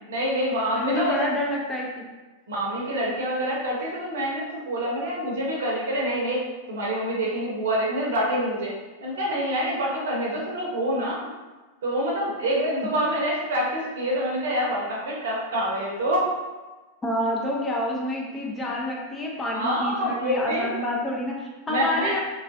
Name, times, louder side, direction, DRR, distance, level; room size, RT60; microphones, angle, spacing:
voice 1, 0.1-1.2 2.5-8.7 9.0-11.3 11.8-16.3 19.5-20.7 21.7-22.2, equal, 60° right, -3 dB, 0.8 m, -26 dB
voice 2, 0.7-2.1 17.0-22.2, left 1 dB, 15° left, -3 dB, 0.6 m, -28 dB
3.1 x 2.4 x 2.6 m, 1.2 s
figure-of-eight pair, 90°, 0 cm